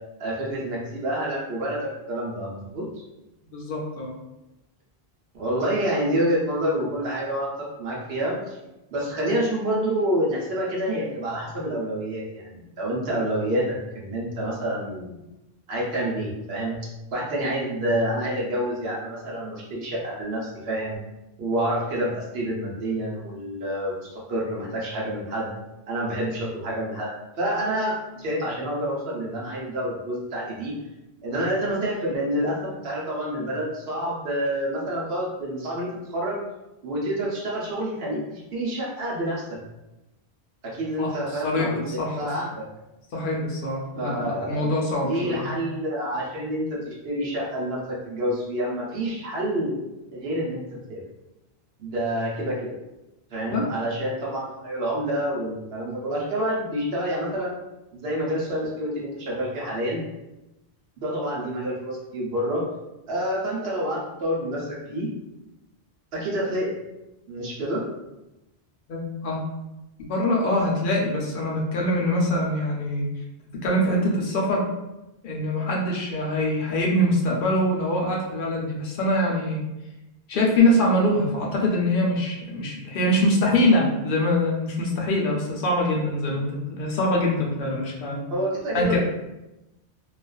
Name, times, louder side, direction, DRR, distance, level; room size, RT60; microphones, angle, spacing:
voice 1, 0.2-2.9 5.3-7.5 7.8-8.6 8.9-15.2 15.7-16.8 17.1-21.0 21.4-25.6 25.9-27.1 27.4-30.7 31.2-36.4 36.8-39.6 40.6-42.6 44.0-44.6 45.0-49.7 50.1-50.6 50.9-51.0 51.8-52.8 53.3-57.5 57.9-60.0 61.0-62.6 63.1-65.1 66.1-66.7 67.3-67.8 88.3-89.0, right 1 dB, 70° right, -4 dB, 0.9 m, -28 dB
voice 2, 3.5-4.1 41.0-41.1 41.4-42.2 43.1-45.6 53.5-53.7 68.9-69.4 70.0-73.0 73.6-74.7 75.2-79.6 80.3-88.2 88.7-89.0, left 1 dB, 60° left, -2 dB, 0.7 m, -24 dB
2.3 x 2.3 x 2.3 m, 0.95 s
omnidirectional pair, 1.1 m